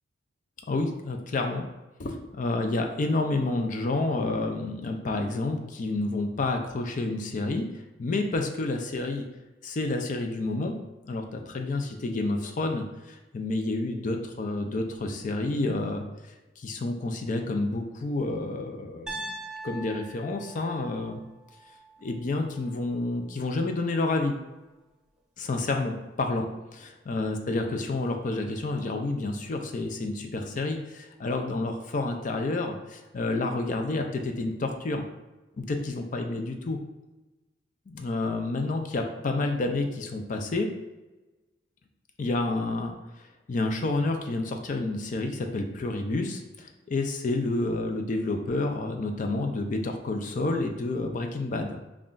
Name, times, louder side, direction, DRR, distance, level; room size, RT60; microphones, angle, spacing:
voice 1, 0.7-1.6 2.0-9.3 9.6-10.8 11.1-16.0 16.6-19.3 19.6-21.2 22.0-24.4 25.4-35.0 35.6-36.8 37.9-40.7 42.2-42.9 43.5-51.8, left 2 dB, 45° left, 5 dB, 0.4 m, -29 dB
Piano, 19.1-23.1, right 2 dB, 5° right, 0.5 m, -42 dB
5.5 x 2.4 x 2.5 m, 1.1 s
head